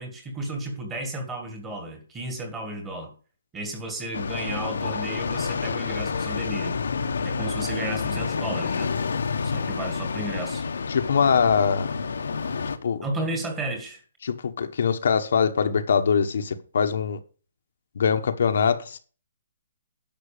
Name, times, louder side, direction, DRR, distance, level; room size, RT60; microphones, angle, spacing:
voice 1, 0.0-3.1 3.5-6.8 7.2-8.9 9.4-10.6 13.0-14.0, right 1 dB, 10° right, 1.9 m, -33 dB
sound 1, 4.1-12.8, left 5 dB, 85° left, 1.2 m, -29 dB
voice 2, 10.9-11.9 12.8-13.0 14.2-17.2 18.0-19.0, left 6 dB, 60° left, 1.2 m, -23 dB
11.0 x 6.2 x 5.0 m
hypercardioid pair, 170°, 0 cm